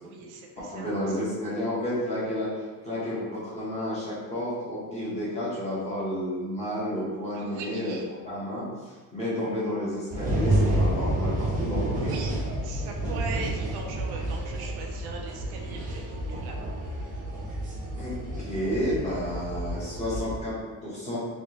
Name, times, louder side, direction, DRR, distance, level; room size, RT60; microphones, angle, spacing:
voice 1, 0.0-1.2 7.3-8.1 12.0-12.3 12.6-16.7, right 4 dB, 70° right, 1 dB, 0.6 m, -40 dB
voice 2, 0.7-2.5 2.8-8.0 8.2-8.6 9.1-12.1 17.9-18.2 18.4-21.2, equal, 15° left, -9 dB, 1.0 m, -31 dB
sound 1, 10.1-20.4, right 1 dB, 20° right, 0.3 m, -29 dB
3.3 x 2.9 x 2.9 m, 1.3 s
cardioid pair, 180°, 40 cm